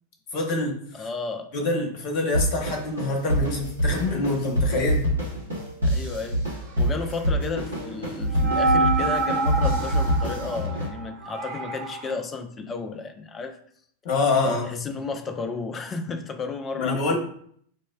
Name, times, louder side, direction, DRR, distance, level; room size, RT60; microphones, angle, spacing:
voice 1, 0.3-1.1 1.5-5.1 14.0-14.7 16.8-17.1, left 3 dB, 45° left, 0.9 m, -26 dB
voice 2, 0.9-1.5 5.8-6.4 6.8-13.6 14.3-17.1, left 4 dB, 20° left, 0.4 m, -33 dB
sound 1, 2.3-10.9, equal, 80° right, 1.2 m, -26 dB
sound 2, 7.4-12.1, right 2 dB, 40° right, 0.4 m, -27 dB
4.8 x 2.1 x 2.2 m
figure-of-eight pair, 90°, 0 cm